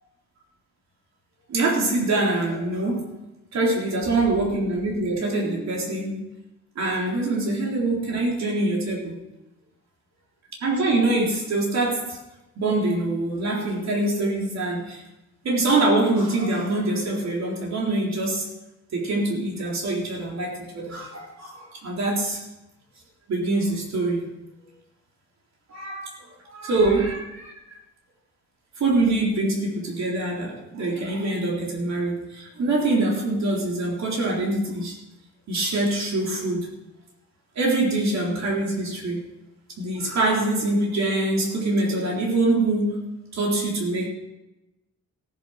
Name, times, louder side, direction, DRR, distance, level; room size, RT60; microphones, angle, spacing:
voice 1, 1.5-3.1 3.5-6.2 6.8-9.2 10.6-12.2 12.6-15.0 15.4-18.5 18.9-22.4 23.3-24.3 25.7-26.1 26.4-27.5 28.8-35.0 35.5-36.7 37.6-39.3 39.8-43.0 43.3-44.1, right 2 dB, 65° right, -2 dB, 3.8 m, -24 dB
16.0 x 10.5 x 6.4 m, 0.97 s
wide cardioid pair, 175°, 30 cm